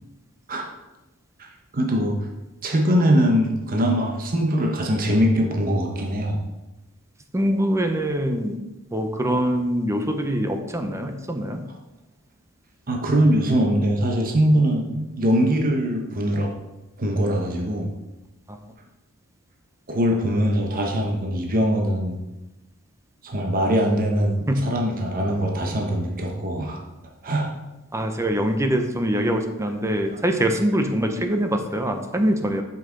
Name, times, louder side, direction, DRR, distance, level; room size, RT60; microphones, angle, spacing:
voice 1, 1.7-2.2 2.6-6.4 12.9-16.5 17.0-17.9 19.9-22.2 23.2-26.8 27.2-27.5, equal, 40° right, 1 dB, 0.9 m, -22 dB
voice 2, 7.3-8.6 8.9-11.6 18.5-18.6 24.5-24.7 27.9-32.6, equal, 15° right, 5 dB, 0.6 m, -23 dB
8.0 x 5.7 x 3.8 m, 1.0 s
head